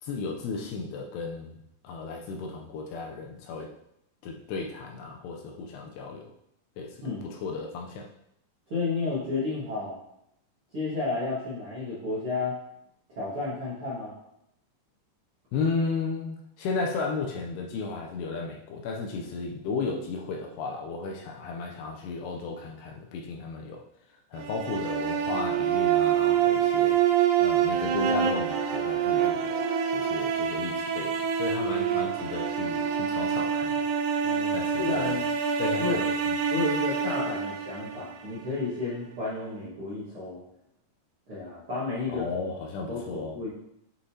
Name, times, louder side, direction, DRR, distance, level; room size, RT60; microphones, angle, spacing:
voice 1, 0.0-1.6 1.8-3.7 4.2-6.3 6.8-8.1 15.5-23.8 24.3-27.0 27.4-29.6 29.9-33.9 34.5-35.2 35.6-36.4 42.1-43.3, left 4 dB, 80° left, 1 dB, 2.6 m, -34 dB
voice 2, 8.7-10.0 10.7-12.6 13.1-14.1 34.2-35.2 35.8-36.0 36.5-40.4 41.3-42.3 42.9-43.5, left 3 dB, 60° right, -10 dB, 1.5 m, -32 dB
sound 1, 24.4-38.5, right 8 dB, 85° right, 2.9 m, -26 dB
8.6 x 5.0 x 2.8 m, 0.78 s
omnidirectional pair, 5.0 m